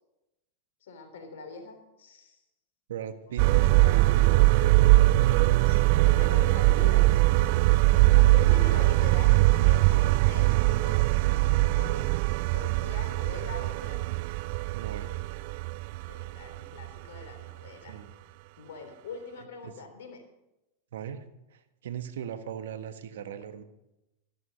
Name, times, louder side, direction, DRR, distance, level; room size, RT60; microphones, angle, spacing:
voice 1, 0.8-2.4 3.3-4.8 5.3-7.3 8.1-12.1 12.5-14.0 16.1-18.0 18.6-20.2, left 4 dB, 70° left, 6 dB, 3.5 m, -43 dB
voice 2, 2.9-4.7 14.7-15.2 17.9-18.1 19.6-19.7 20.9-23.6, right 9 dB, 75° right, 11 dB, 1.3 m, -39 dB
sound 1, 3.4-17.2 17.5-17.6, right 19 dB, 55° right, 0.4 m, -22 dB
14.0 x 13.0 x 5.4 m, 0.90 s
hypercardioid pair, 100°, 0 cm